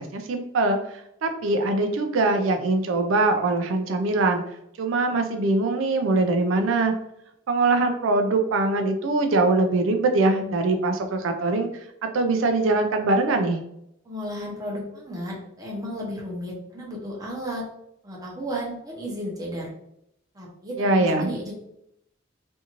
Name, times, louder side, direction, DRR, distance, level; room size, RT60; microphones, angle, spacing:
voice 1, 0.0-4.4 4.8-6.9 7.5-13.6 20.8-21.3, right 2 dB, 90° right, 5 dB, 0.4 m, -22 dB
voice 2, 14.0-17.6 18.0-19.7 20.3-21.5, equal, 20° right, -3 dB, 0.7 m, -33 dB
2.6 x 2.4 x 2.8 m, 0.77 s
head